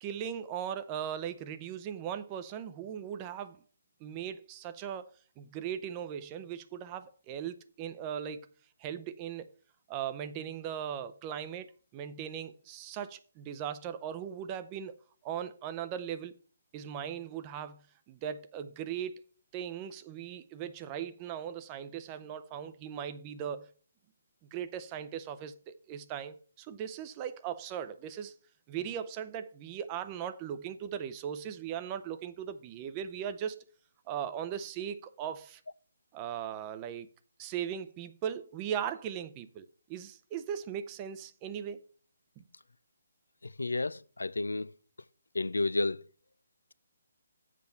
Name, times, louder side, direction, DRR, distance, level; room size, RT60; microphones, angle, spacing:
voice 1, 0.0-3.6 4.0-8.5 8.8-9.5 9.9-15.0 15.2-16.3 16.7-19.2 19.5-23.7 24.5-28.3 28.7-33.7 34.1-35.6 36.1-37.1 37.4-41.8 42.4-42.5, right 9 dB, 25° right, 0.7 m, -38 dB
voice 2, 43.4-44.7 45.3-46.0, left 2 dB, 75° left, 0.4 m, -31 dB
7.5 x 5.1 x 6.9 m
figure-of-eight pair, 140°, 0 cm